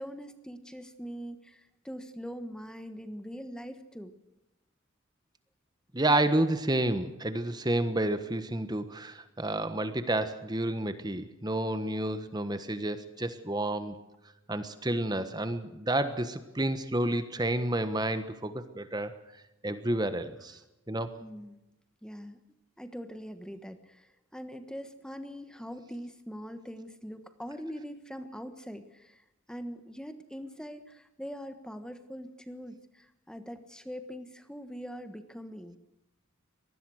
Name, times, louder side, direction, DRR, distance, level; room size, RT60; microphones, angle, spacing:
voice 1, 0.0-4.1 21.2-21.6 22.0-22.4 22.8-35.8, equal, 5° left, 9 dB, 1.3 m, -42 dB
voice 2, 5.9-14.0 14.5-19.1 19.6-20.6 20.9-21.1, right 1 dB, 20° right, 10 dB, 1.3 m, -30 dB
25.0 x 19.5 x 6.4 m, 0.93 s
head